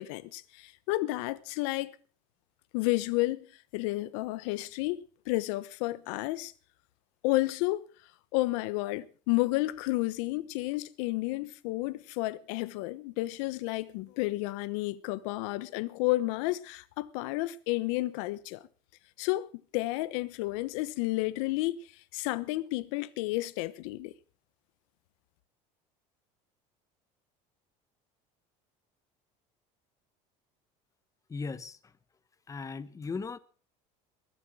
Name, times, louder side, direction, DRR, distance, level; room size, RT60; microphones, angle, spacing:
voice 1, 0.0-1.9 2.7-3.4 3.7-6.5 7.2-7.9 8.3-18.6 19.2-21.8 22.1-24.1, left 19 dB, 80° left, 1.1 m, -31 dB
voice 2, 31.3-32.0 32.5-33.4, left 4 dB, 20° left, 1.0 m, -38 dB
22.0 x 7.6 x 6.3 m
supercardioid pair, 110°, 16 cm